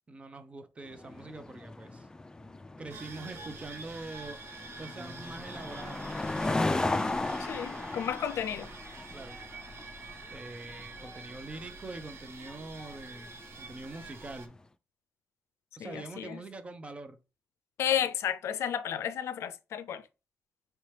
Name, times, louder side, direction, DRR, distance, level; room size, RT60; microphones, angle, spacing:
voice 1, 0.1-2.1 2.8-4.4 4.8-6.1 6.4-6.7 9.1-9.4 10.3-14.6 15.7-17.2, right 2 dB, 25° right, 0.7 m, -44 dB
sound 1, 0.9-14.4, left 2 dB, 15° left, 0.4 m, -37 dB
sound 2, 2.9-14.5, right 3 dB, 65° right, 0.8 m, -47 dB
voice 2, 7.4-8.7 15.8-16.4 17.8-20.0, left 9 dB, 85° left, 0.4 m, -32 dB
4.5 x 2.9 x 3.2 m
cardioid pair, 105°, 5 cm